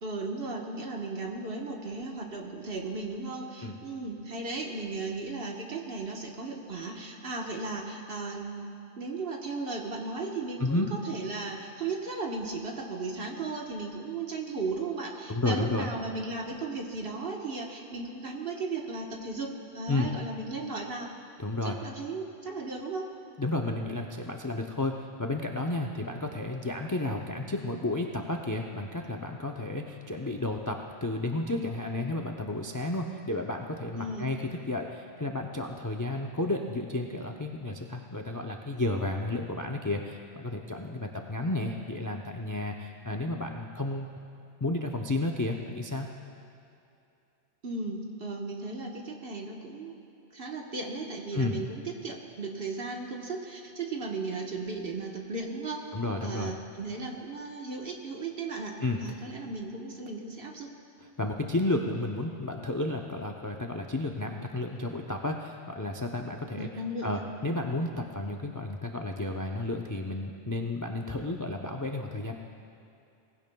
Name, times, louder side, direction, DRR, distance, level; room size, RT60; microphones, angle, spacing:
voice 1, 0.0-8.7 9.0-21.1 21.6-23.1 26.0-26.1 33.9-34.3 47.6-50.0 50.3-58.8 59.0-60.7 66.5-67.2, right 3 dB, 55° right, 0 dB, 1.4 m, -36 dB
voice 2, 15.3-15.9 19.9-20.1 21.4-21.8 23.4-44.1 44.6-46.1 51.3-51.5 55.9-56.5 58.8-59.0 61.2-66.7 67.0-72.3, left 2 dB, 25° left, 2 dB, 0.4 m, -32 dB
19.5 x 16.0 x 2.3 m, 2.7 s
omnidirectional pair, 1.2 m